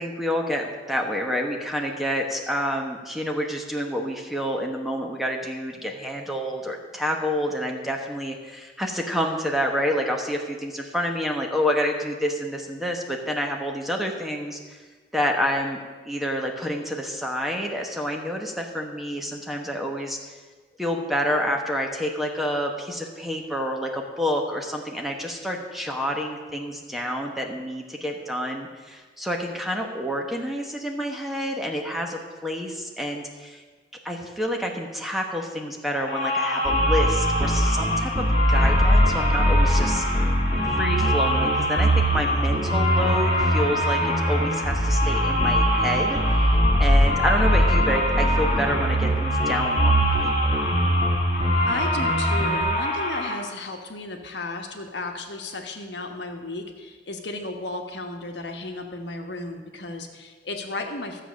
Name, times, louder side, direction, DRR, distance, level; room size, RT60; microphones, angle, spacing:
voice 1, 0.0-14.6 15.1-15.8 16.0-20.2 20.8-33.6 34.0-40.0 40.5-46.2 46.8-50.6, equal, ahead, 1 dB, 1.1 m, -28 dB
sound 1, 36.0-53.3, left 1 dB, 40° left, 2.4 m, -26 dB
sound 2, 36.6-52.6, equal, 25° right, 1.7 m, -22 dB
voice 2, 51.7-61.2, left 2 dB, 70° left, 4 dB, 1.3 m, -34 dB
13.0 x 7.6 x 6.3 m, 1.4 s
head